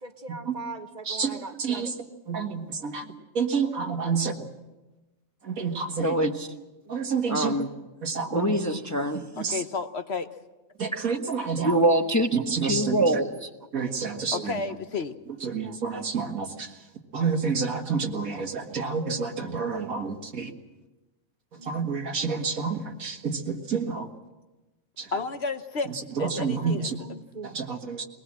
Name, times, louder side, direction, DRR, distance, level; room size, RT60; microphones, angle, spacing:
voice 1, 0.0-1.9 6.9-7.0 11.1-11.3 11.6-12.0 13.1-13.3 13.9-14.5 15.6-15.8 17.2-17.3 18.6-19.9 21.6-21.9 26.5-27.6, right 3 dB, 35° right, 8 dB, 1.1 m, -42 dB
voice 2, 1.0-2.0 2.3-4.4 5.4-6.3 6.9-7.6 8.0-8.6 9.4-9.6 10.8-11.8 12.3-13.0 13.7-14.6 15.4-16.8 17.1-20.5 21.6-24.1 25.0-25.1 25.9-27.0 27.4-28.0, right 5 dB, 80° right, 4 dB, 2.2 m, -29 dB
voice 3, 6.0-6.5 7.3-7.7 8.3-9.5 11.0-11.1 11.6-13.5, right 1 dB, 15° left, 4 dB, 0.9 m, -25 dB
voice 4, 9.4-10.3 14.3-15.1 25.1-25.9 26.2-26.8, left 4 dB, 55° left, 9 dB, 1.1 m, -31 dB
22.0 x 19.5 x 7.5 m, 1.1 s
omnidirectional pair, 1.4 m